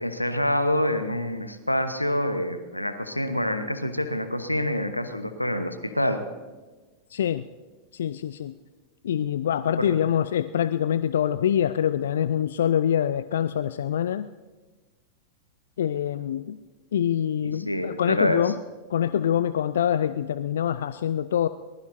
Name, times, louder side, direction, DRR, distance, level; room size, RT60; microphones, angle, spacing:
voice 1, 0.0-6.2 9.8-9.9 17.4-18.4, left 1 dB, 85° left, 10 dB, 1.0 m, -26 dB
voice 2, 7.1-7.5 7.9-8.6 9.0-14.3 15.8-16.6 16.9-18.5 18.9-21.5, left 9 dB, 60° left, 14 dB, 0.4 m, -25 dB
23.0 x 20.0 x 2.7 m, 1.3 s
figure-of-eight pair, 90°, 0 cm